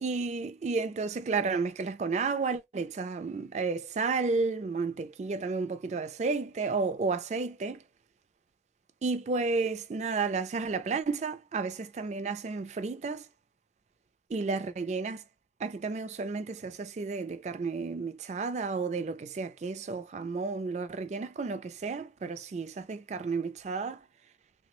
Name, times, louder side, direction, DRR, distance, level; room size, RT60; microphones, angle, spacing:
voice 1, 0.0-7.8 9.0-13.3 14.3-15.2 15.6-24.0, right 4 dB, 40° right, 0.3 m, -32 dB
3.2 x 2.0 x 2.9 m
head